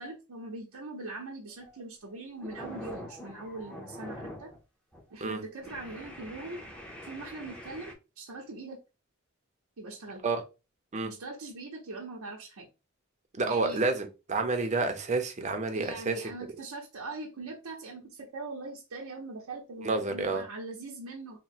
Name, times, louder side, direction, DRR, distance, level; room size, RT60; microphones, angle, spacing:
voice 1, 0.0-4.5 5.1-6.7 7.0-8.8 9.8-10.3 11.0-12.7 13.5-13.8 15.7-21.4, right 2 dB, 85° right, 0.7 m, -41 dB
sound 1, 1.5-1.8 2.1-4.6 4.9-5.1 5.6-7.9, left 1 dB, 5° left, 0.7 m, -44 dB
voice 2, 13.3-16.2 19.8-20.4, right 3 dB, 35° right, 0.6 m, -29 dB
3.0 x 2.1 x 4.2 m
head